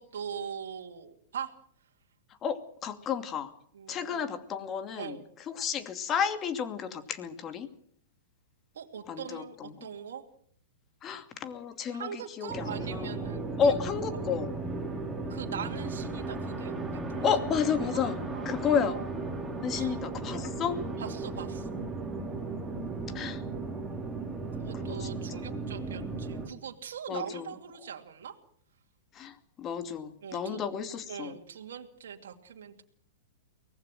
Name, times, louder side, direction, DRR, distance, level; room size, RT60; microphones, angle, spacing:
voice 1, 0.0-1.5 3.7-4.3 5.0-5.2 8.7-10.2 11.9-13.8 15.3-17.3 17.8-18.0 18.3-19.0 19.7-20.0 21.0-21.8 24.6-28.4 30.2-30.6 31.1-32.8, right 8 dB, 65° right, 2 dB, 2.6 m, -41 dB
voice 2, 2.4-3.5 3.9-5.2 5.5-7.7 9.1-9.7 11.0-13.1 13.6-14.5 17.2-18.2 18.4-19.0 19.6-20.8 23.1-23.4 24.8-25.1 25.3-25.5 27.1-27.5 29.1-31.4, left 7 dB, 30° left, 10 dB, 2.5 m, -31 dB
sound 1, 12.5-26.5, right 3 dB, 5° right, 5.3 m, -36 dB
24.0 x 19.0 x 7.7 m, 0.62 s
hypercardioid pair, 110°, 0 cm